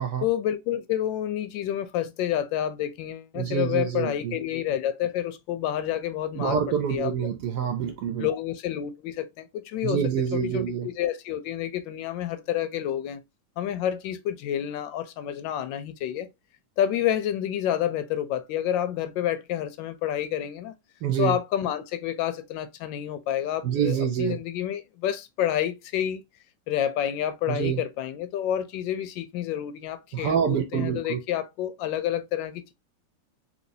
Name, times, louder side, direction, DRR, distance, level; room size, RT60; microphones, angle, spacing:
voice 1, 0.2-7.3 8.2-10.0 10.3-13.2 13.6-16.3 16.8-20.7 21.2-26.2 26.7-32.7, left 11 dB, 90° left, 1.3 m, -29 dB
voice 2, 3.4-4.3 6.4-8.3 9.8-10.9 21.0-21.3 23.6-24.4 27.5-27.8 30.1-31.2, right 8 dB, 75° right, 1.1 m, -26 dB
3.1 x 2.9 x 2.7 m
omnidirectional pair, 2.0 m